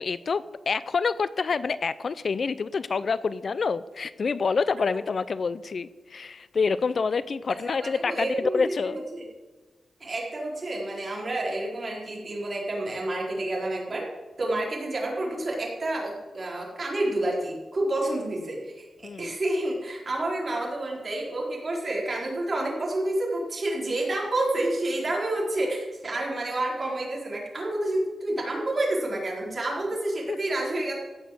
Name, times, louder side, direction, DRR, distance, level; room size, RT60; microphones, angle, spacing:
voice 1, 0.0-9.0 19.0-19.3 30.3-30.4, left 5 dB, 50° left, 16 dB, 0.4 m, -27 dB
voice 2, 7.6-9.2 10.0-14.1 14.4-18.9 19.2-31.0, right 1 dB, 35° right, -3 dB, 4.3 m, -29 dB
16.0 x 6.5 x 7.7 m, 1.3 s
wide cardioid pair, 140°, 0 cm